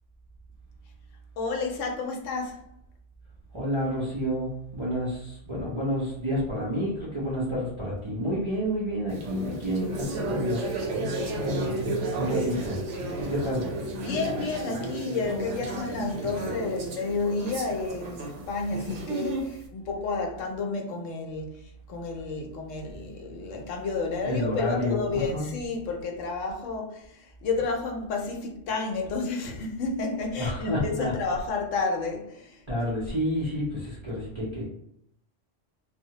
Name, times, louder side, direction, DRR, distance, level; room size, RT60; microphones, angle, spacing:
voice 1, 1.4-2.7 13.9-21.6 21.9-32.6, left 3 dB, 85° left, 2 dB, 0.9 m, -31 dB
voice 2, 3.5-10.7 11.4-12.8 13.2-13.8 24.2-25.5 30.4-31.1 32.7-34.6, equal, 40° right, -8 dB, 0.4 m, -29 dB
sound 1, 9.1-19.6, right 2 dB, 75° right, 0.9 m, -32 dB
2.2 x 2.0 x 2.8 m, 0.74 s
omnidirectional pair, 1.3 m